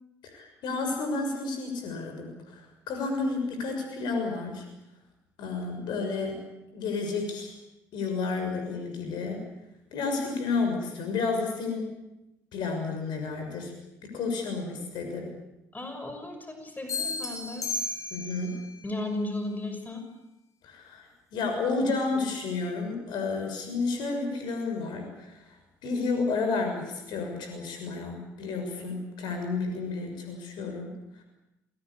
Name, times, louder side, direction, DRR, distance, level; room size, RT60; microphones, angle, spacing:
voice 1, 0.2-2.6 2.9-4.6 5.4-6.4 6.7-7.5 7.9-9.4 9.9-11.9 12.5-13.7 14.1-15.3 18.1-18.6 20.6-25.3 25.8-30.9, left 4 dB, 60° left, 4 dB, 6.4 m, -31 dB
voice 2, 15.7-17.7 18.8-20.0, left 2 dB, 20° left, 6 dB, 6.2 m, -35 dB
sound 1, 16.9-18.5, left 3 dB, 40° left, 6.2 m, -33 dB
27.5 x 20.0 x 8.6 m, 0.92 s
figure-of-eight pair, 50°, 8 cm